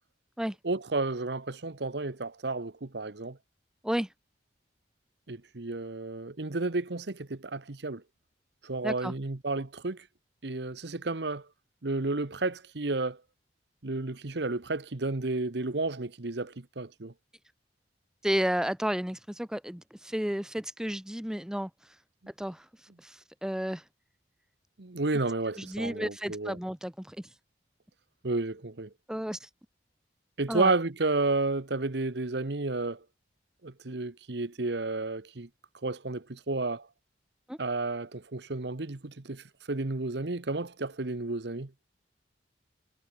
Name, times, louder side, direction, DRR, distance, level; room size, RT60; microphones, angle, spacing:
voice 1, 0.6-3.4 5.3-8.0 8.6-10.1 10.4-11.5 11.8-13.2 13.8-17.1 24.8-26.6 28.2-28.9 30.4-33.0 33.6-35.5 35.8-36.9 37.6-41.7, right 3 dB, 65° right, 1.1 m, -32 dB
voice 2, 18.2-21.7 22.4-22.7 23.0-23.8 25.6-27.3 29.1-29.5 30.5-30.7 37.5-37.6, equal, 5° right, 0.6 m, -32 dB
head